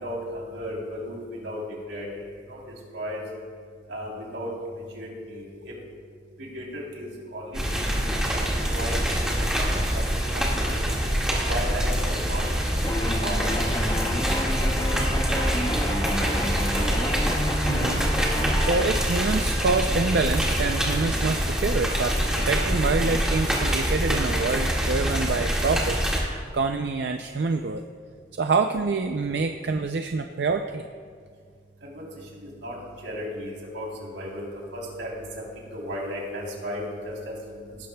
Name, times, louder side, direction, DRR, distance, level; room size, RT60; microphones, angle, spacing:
voice 1, 0.0-1.6 1.9-2.2 2.5-2.6 2.9-3.2 3.9-4.5 4.9-5.7 6.4-7.6 7.9-8.0 8.7-10.0 10.3-10.8 11.5-13.4 14.1-14.6 15.0-16.1 31.8-32.1 32.4-32.8 33.0-34.4 34.7-35.1 35.7-37.6, equal, 85° right, -2 dB, 3.3 m, -35 dB
sound 1, 7.5-26.2, equal, 5° right, 1.8 m, -25 dB
sound 2, 12.8-18.9, left 1 dB, 20° left, 0.7 m, -30 dB
voice 2, 17.7-18.0 18.6-27.8 28.4-30.9, right 4 dB, 65° right, 6 dB, 0.4 m, -26 dB
18.0 x 12.0 x 2.3 m, 2.1 s
head